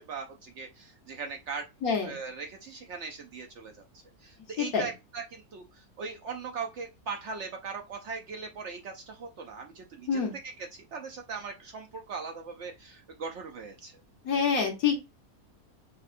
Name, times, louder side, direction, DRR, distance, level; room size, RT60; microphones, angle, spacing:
voice 1, 0.1-1.7 2.0-14.0, right 5 dB, 65° right, 3 dB, 0.8 m, -40 dB
voice 2, 1.8-2.2 4.6-4.9 10.1-10.3 14.2-14.9, left 6 dB, 70° left, 2 dB, 1.5 m, -26 dB
5.4 x 2.3 x 2.4 m, 0.25 s
omnidirectional pair, 1.6 m